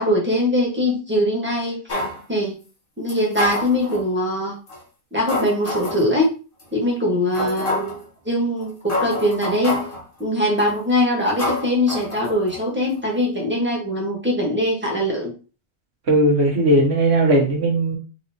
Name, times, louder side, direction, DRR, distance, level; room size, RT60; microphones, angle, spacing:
voice 1, 0.0-1.8 2.3-2.6 3.0-4.6 5.1-6.3 6.7-9.8 10.2-15.3, left 1 dB, 10° right, -2 dB, 1.5 m, -22 dB
sound 1, 1.9-2.2 3.1-4.1 4.7-4.8 5.3-6.1 6.6-6.7 7.3-8.0 8.6-8.7 8.9-10.0 10.6-10.9 11.4-12.6 12.9-13.0, left 1 dB, 55° left, 1.5 m, -27 dB
voice 2, 16.1-18.0, right 1 dB, 85° right, -1 dB, 1.6 m, -17 dB
4.1 x 4.0 x 3.0 m, 0.34 s
omnidirectional pair, 1.1 m